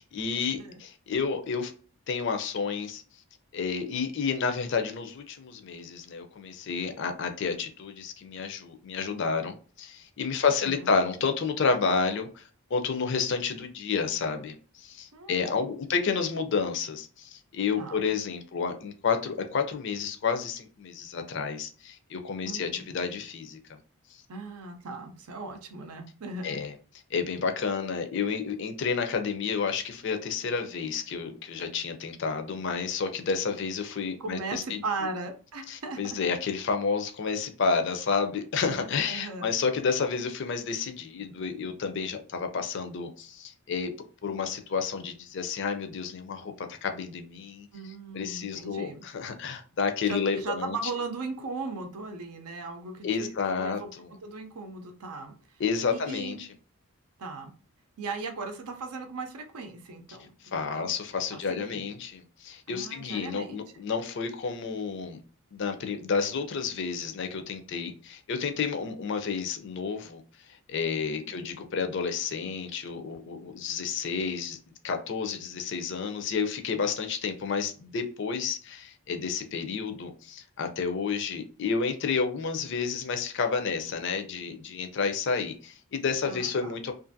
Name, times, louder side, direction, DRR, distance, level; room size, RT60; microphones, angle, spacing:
voice 1, 0.0-1.7 2.1-3.0 3.5-12.4 12.7-14.6 14.8-23.6 26.4-26.7 27.1-34.8 35.7-43.9 44.2-47.7 48.1-50.8 53.0-54.1 55.6-56.5 60.5-65.2 65.5-70.2 70.7-74.6 74.8-86.9, left 5 dB, 55° left, 0.4 m, -30 dB
voice 2, 10.4-10.9 15.1-15.5 15.8-15.9 17.8-18.1 22.4-22.8 24.3-26.6 34.2-36.2 38.6-39.5 47.7-49.0 50.0-53.9 54.2-55.3 55.9-56.4 57.2-57.5 58.0-60.9 61.3-61.9 62.7-63.6 71.3-71.5 86.2-86.8, right 3 dB, 85° right, 0.6 m, -38 dB
2.5 x 2.5 x 2.5 m
head